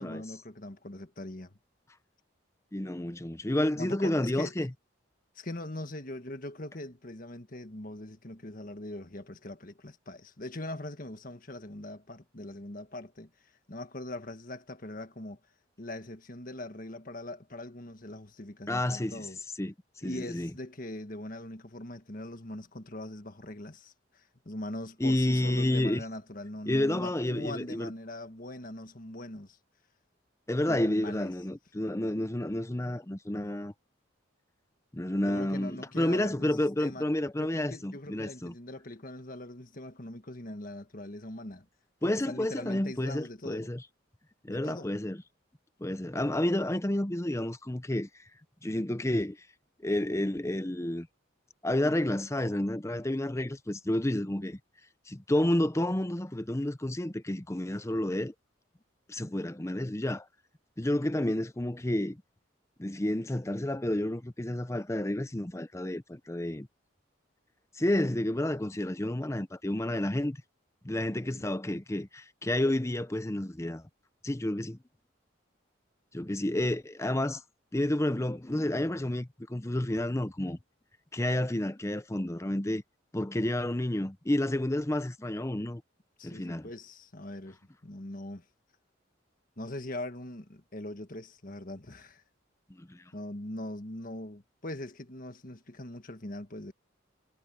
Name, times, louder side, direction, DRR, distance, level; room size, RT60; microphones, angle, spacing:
voice 1, 0.0-1.6 3.8-4.7 5.3-13.3 13.7-15.4 15.8-19.4 20.0-29.6 30.7-31.3 35.2-37.0 37.4-41.7 42.0-43.7 44.5-44.9 71.2-71.5 86.2-88.4 89.6-92.2 93.1-96.7, left 1 dB, 45° left, 1.7 m, -41 dB
voice 2, 2.7-4.7 18.7-19.2 19.6-19.7 20.0-20.5 25.0-26.0 26.7-27.9 30.5-33.7 34.9-38.5 42.0-43.8 44.4-45.2 45.8-48.1 48.6-49.4 49.8-51.1 51.6-54.6 55.1-58.3 59.1-60.3 60.8-62.2 62.8-66.7 67.7-70.4 70.8-73.8 74.2-74.8 76.1-77.4 77.7-80.6 81.1-82.8 83.1-85.8 86.2-86.7 92.7-93.0, left 1 dB, 15° left, 0.7 m, -30 dB
head